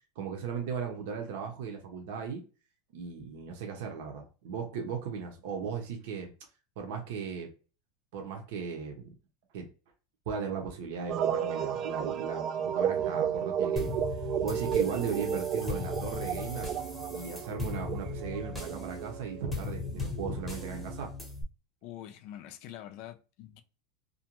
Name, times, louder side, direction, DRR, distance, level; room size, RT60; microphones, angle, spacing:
voice 1, 0.2-2.4 2.9-6.3 6.8-7.5 8.1-9.1 9.5-9.7 10.3-14.0 14.4-16.7 17.1-21.1, right 6 dB, 70° right, 0.7 m, -37 dB
sound 1, 11.1-21.0, right 8 dB, 40° right, 0.3 m, -33 dB
sound 2, 13.8-21.4, left 3 dB, 5° left, 0.8 m, -38 dB
voice 2, 21.8-23.6, left 12 dB, 55° left, 0.4 m, -45 dB
2.5 x 2.2 x 2.9 m
supercardioid pair, 145°, 0 cm